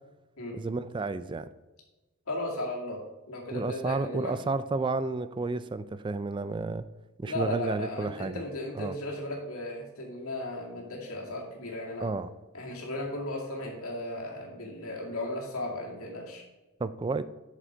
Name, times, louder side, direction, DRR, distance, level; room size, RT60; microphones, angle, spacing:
voice 1, 0.5-1.5 3.5-6.9 7.2-8.4 8.7-8.9 12.0-12.3 16.8-17.2, right 3 dB, 20° right, 14 dB, 0.3 m, -31 dB
voice 2, 2.3-3.0 3.3-4.3 7.2-12.1 12.5-16.4, left 1 dB, 85° left, -2 dB, 2.4 m, -36 dB
7.8 x 6.5 x 5.1 m, 1.1 s
head